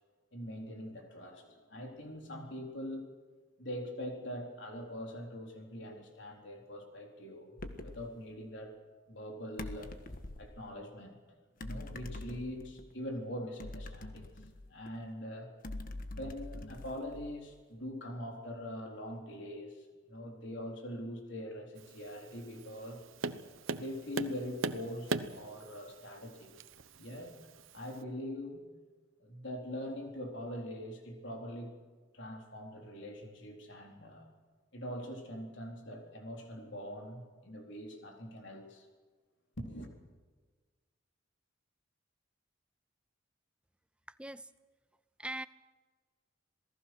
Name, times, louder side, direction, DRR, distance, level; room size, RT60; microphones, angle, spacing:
voice 1, 0.3-3.1 3.6-8.7 9.1-9.9 10.4-11.2 11.6-14.3 14.7-15.5 15.9-23.0 23.7-26.5 26.9-27.3 27.7-28.7 29.2-31.7 32.1-34.3 34.7-38.9 39.6-39.9, equal, 60° left, 2 dB, 4.1 m, -43 dB
sound 1, 7.6-8.1 9.6-10.5 11.6-12.8 13.6-15.0 15.6-17.5, left 2 dB, 45° left, 1.5 m, -44 dB
Tap, 21.8-28.0, right 3 dB, 80° right, 1.0 m, -41 dB
voice 2, 44.1-44.5 45.2-45.5, right 1 dB, 5° right, 14 dB, 0.5 m, -41 dB
27.0 x 18.5 x 6.2 m, 1.4 s
head